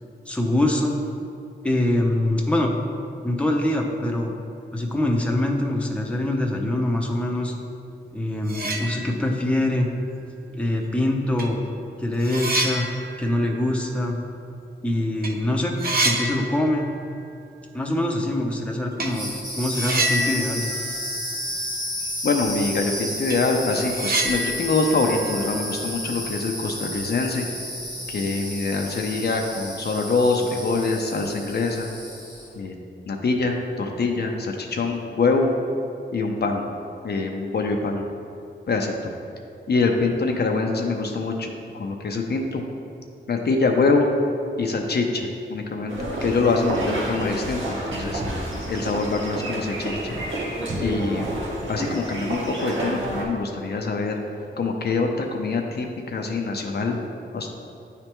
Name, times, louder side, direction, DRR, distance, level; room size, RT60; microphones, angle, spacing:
voice 1, 0.3-1.0 1.6-2.7 3.2-4.3 4.7-7.5 8.1-9.9 10.5-11.6 12.0-12.9 13.2-14.2 14.8-15.8 16.0-16.9 17.7-19.3 19.6-20.7, left 1 dB, 5° left, 0 dB, 0.6 m, -24 dB
sound 1, 8.1-8.2 8.4-9.5 9.8-9.9 10.9-11.0 11.4-14.8 15.1-15.3 15.6-17.2 17.4-17.5 19.0-19.2 19.7-21.9 22.1-22.2 22.7-22.8 23.1-26.3, right 1 dB, 50° right, 0.7 m, -29 dB
sound 2, 19.0-32.6, equal, 20° right, 1.2 m, -32 dB
voice 2, 22.2-27.5 28.1-31.9 32.5-32.7 33.1-35.5 36.1-36.7 37.0-38.0 38.7-38.9 39.7-41.5 41.7-42.6 43.3-44.1 44.6-48.2 48.7-50.1 50.8-51.4 51.7-54.2 54.6-57.0 57.3-57.5, left 3 dB, 55° left, 2 dB, 0.6 m, -24 dB
maastricht town sounds, 45.9-53.2, right 1 dB, 90° right, 1.0 m, -29 dB
9.6 x 3.3 x 3.0 m, 2.6 s
wide cardioid pair, 75°, 19 cm